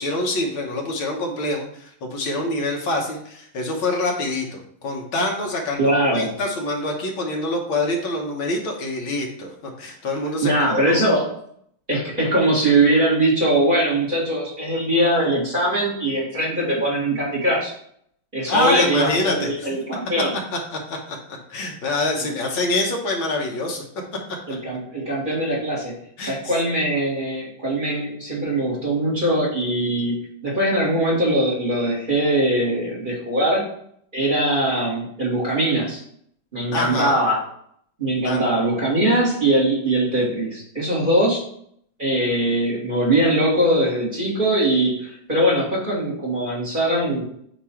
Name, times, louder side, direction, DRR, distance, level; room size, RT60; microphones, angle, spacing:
voice 1, 0.0-11.0 18.5-19.7 20.7-23.8 26.2-26.5 36.7-37.2 38.2-38.4, left 2 dB, 75° left, 0 dB, 2.0 m, -25 dB
voice 2, 5.8-6.3 10.4-11.3 11.9-17.7 18.3-20.3 24.5-25.9 26.2-33.6 34.1-36.0 36.5-37.4 38.0-41.4 42.0-47.2, right 1 dB, 25° right, -5 dB, 1.9 m, -21 dB
8.5 x 3.0 x 4.4 m, 0.67 s
omnidirectional pair, 2.3 m